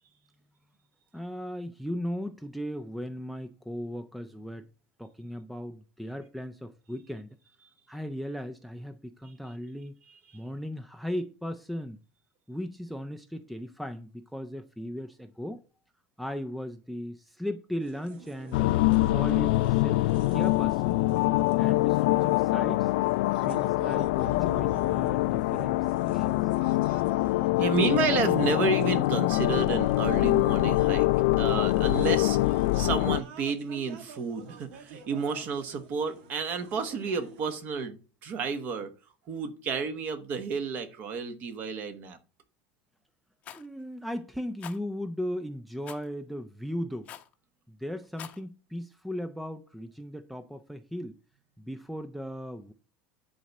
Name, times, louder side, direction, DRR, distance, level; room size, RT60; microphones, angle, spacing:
voice 1, 1.1-4.6 5.0-7.4 7.9-10.0 10.3-12.0 12.5-15.6 16.2-18.7 19.1-20.9 21.6-22.9 23.4-26.5 43.5-47.1 47.7-51.2 51.6-52.7, equal, ahead, 0.3 m, -37 dB
sound 1, 17.8-37.6, right 6 dB, 80° right, 1.7 m, -50 dB
sound 2, 18.5-33.2, left 19 dB, 80° left, 0.4 m, -24 dB
voice 2, 27.6-31.1 31.4-38.9 39.3-42.2, right 5 dB, 35° right, 1.1 m, -31 dB
Rattle, 43.4-43.7 44.6-44.8 45.9-46.1 47.1-47.3 48.0-48.4, left 10 dB, 25° left, 0.7 m, -44 dB
10.0 x 4.1 x 5.9 m
cardioid pair, 175°, 5 cm